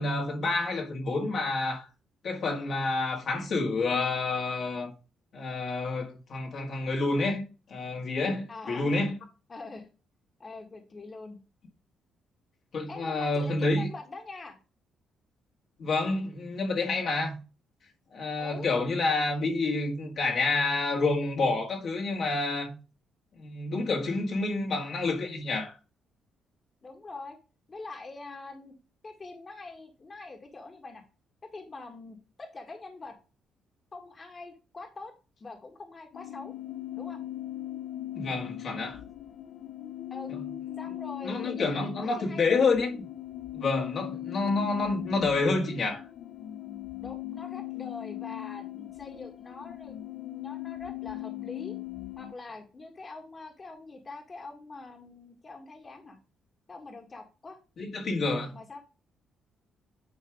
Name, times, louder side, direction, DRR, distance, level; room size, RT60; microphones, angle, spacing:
voice 1, 0.0-1.9 2.2-4.9 5.3-7.4 7.7-9.1 12.7-13.9 15.8-17.4 18.1-22.8 23.4-25.7 38.1-39.0 40.3-40.4 41.2-43.0 43.5-46.0 57.8-58.6, left 3 dB, 60° left, 1.7 m, -28 dB
voice 2, 8.5-8.9 9.5-9.9 10.4-11.4 12.9-14.6 18.4-18.7 26.8-27.4 27.7-28.8 29.0-31.0 31.5-33.2 33.9-35.1 35.4-36.5 36.9-37.2 40.1-40.3 40.8-42.6 44.2-44.5 47.0-51.7 52.2-56.2 56.7-57.6 58.5-58.8, left 3 dB, 35° left, 1.7 m, -44 dB
sound 1, 36.1-52.3, left 14 dB, 75° left, 0.5 m, -39 dB
9.3 x 3.3 x 4.9 m
cardioid pair, 90°, 0 cm